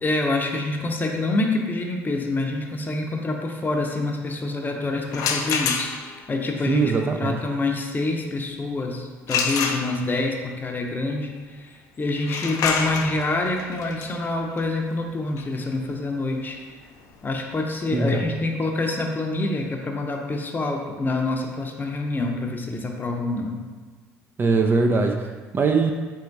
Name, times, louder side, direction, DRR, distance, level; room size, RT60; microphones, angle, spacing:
voice 1, 0.0-5.9 6.3-6.9 7.2-16.6 17.2-23.6, left 2 dB, 25° left, 2 dB, 0.7 m, -26 dB
sound 1, 5.1-6.3 9.3-10.3 12.2-17.8, left 5 dB, 60° left, 0.5 m, -28 dB
voice 2, 6.7-7.4 17.9-18.2 24.4-25.3 25.5-25.9, right 4 dB, 30° right, 4 dB, 0.4 m, -21 dB
4.5 x 3.5 x 2.7 m, 1.4 s
hypercardioid pair, 70°, 7 cm